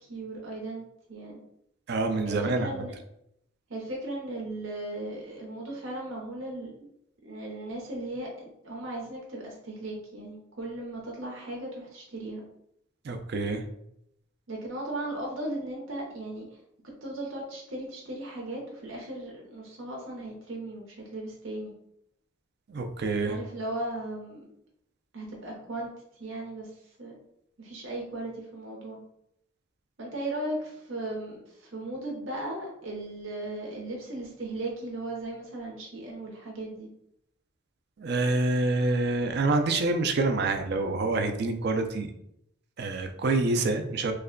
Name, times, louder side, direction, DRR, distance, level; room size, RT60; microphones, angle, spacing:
voice 1, 0.1-1.4 2.2-2.9 3.7-6.9 7.2-12.4 14.5-16.5 17.0-21.7 23.2-24.4 25.1-25.9 26.2-26.7 27.0-27.2 27.6-29.0 30.0-36.9, right 1 dB, 75° right, -2 dB, 0.8 m, -37 dB
voice 2, 1.9-2.7 13.0-13.6 22.7-23.4 38.0-42.1 42.8-44.1, right 3 dB, 55° right, 6 dB, 0.4 m, -27 dB
3.2 x 2.2 x 3.7 m, 0.75 s
head